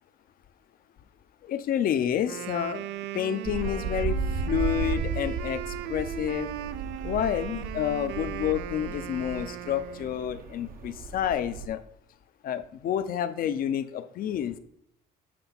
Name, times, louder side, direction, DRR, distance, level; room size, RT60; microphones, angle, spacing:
voice 1, 1.4-2.8 3.1-4.2 4.5-6.5 7.0-11.8 12.4-14.6, left 10 dB, 60° left, 11 dB, 0.7 m, -29 dB
Wind instrument woodwind instrument, 2.1-10.3, right 12 dB, 90° right, 0.4 m, -38 dB
sound 1, 3.4-11.7, right 4 dB, 55° right, 0.9 m, -34 dB
7.7 x 3.3 x 5.9 m, 0.70 s
cardioid pair, 110°, 17 cm